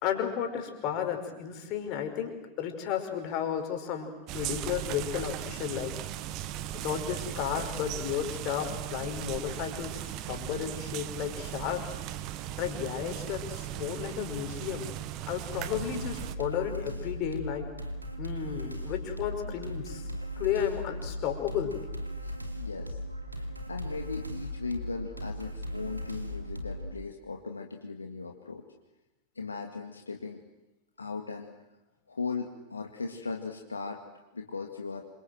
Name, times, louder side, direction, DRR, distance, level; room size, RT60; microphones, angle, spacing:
voice 1, 0.0-5.9 6.7-10.0 10.3-11.8 12.6-14.9 15.3-17.7 18.2-20.0 20.4-21.7, left 9 dB, 40° left, 4 dB, 5.2 m, -33 dB
sound 1, 4.3-16.3, right 13 dB, 40° right, 1.3 m, -38 dB
sound 2, 15.6-26.9, equal, 85° right, 2.6 m, -38 dB
voice 2, 22.2-23.0 23.3-28.6 29.4-30.4 31.0-31.5 32.1-34.0 34.3-35.0, left 4 dB, 75° left, 3 dB, 2.1 m, -38 dB
27.5 x 25.0 x 7.8 m, 1.0 s
figure-of-eight pair, 90°, 0 cm